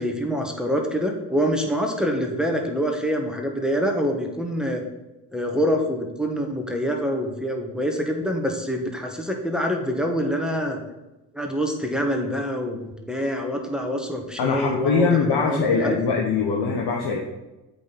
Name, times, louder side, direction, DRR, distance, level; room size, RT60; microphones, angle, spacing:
voice 1, 0.0-4.8 5.3-10.8 11.3-16.0, equal, ahead, 2 dB, 1.5 m, -26 dB
voice 2, 14.4-17.2, left 5 dB, 50° left, 0 dB, 1.2 m, -22 dB
7.9 x 5.4 x 4.2 m, 1.0 s
hypercardioid pair, 45°, 50 cm